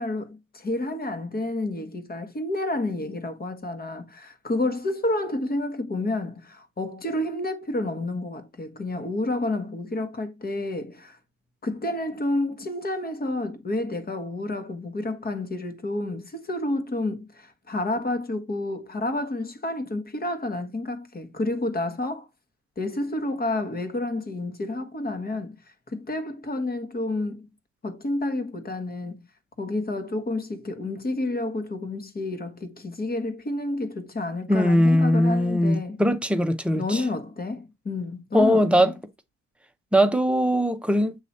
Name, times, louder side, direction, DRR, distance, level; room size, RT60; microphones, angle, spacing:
voice 1, 0.0-11.2 11.6-22.3 22.8-25.6 25.9-27.5 27.8-29.3 29.6-36.0 36.7-38.9, left 2 dB, 30° left, 1.4 m, -30 dB
voice 2, 34.5-37.0 38.3-38.9 39.9-41.2, equal, 5° right, 0.8 m, -20 dB
7.5 x 3.0 x 4.2 m
cardioid pair, 90°, 30 cm